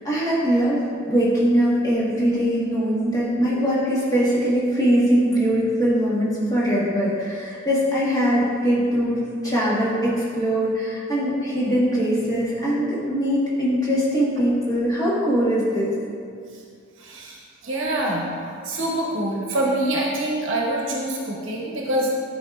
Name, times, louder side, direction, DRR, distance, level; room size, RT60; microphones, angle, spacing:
voice 1, 0.0-0.8 1.1-15.9, equal, 15° left, -8 dB, 1.3 m, -21 dB
voice 2, 17.0-17.4 17.6-18.3 18.6-22.1, right 1 dB, 65° right, -2 dB, 0.8 m, -25 dB
10.0 x 4.6 x 2.4 m, 2.3 s
head